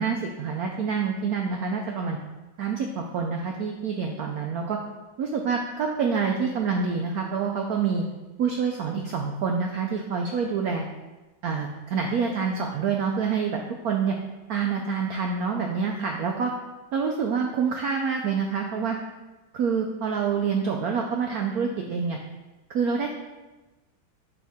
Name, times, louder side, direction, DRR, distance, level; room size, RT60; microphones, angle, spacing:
voice 1, 0.0-2.2 2.6-4.8 5.2-8.0 8.4-10.8 11.4-14.2 14.5-16.5 16.9-19.0 19.5-22.2 22.7-23.1, right 5 dB, 75° right, 2 dB, 0.8 m, -27 dB
10.0 x 3.7 x 3.5 m, 1.1 s
omnidirectional pair, 2.2 m